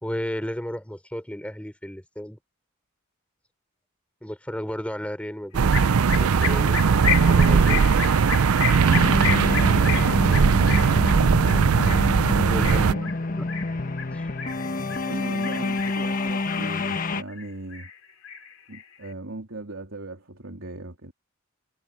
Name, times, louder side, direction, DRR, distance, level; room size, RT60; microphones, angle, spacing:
voice 1, 0.0-2.4 4.2-5.8 6.1-6.8 7.3-7.8 12.5-12.8 13.4-13.5 14.1-14.2, equal, 5° left, 3.4 m, -33 dB
sound 1, 5.5-12.9, right 5 dB, 90° right, 0.5 m, -19 dB
sound 2, 5.7-15.1 15.4-16.2 16.5-17.5 17.7-19.1, left 8 dB, 75° left, 3.3 m, -31 dB
sound 3, 8.8-17.2, left 2 dB, 40° left, 1.2 m, -28 dB
voice 2, 12.2-13.1 15.0-17.9 18.7-21.1, right 2 dB, 70° right, 3.5 m, -37 dB
head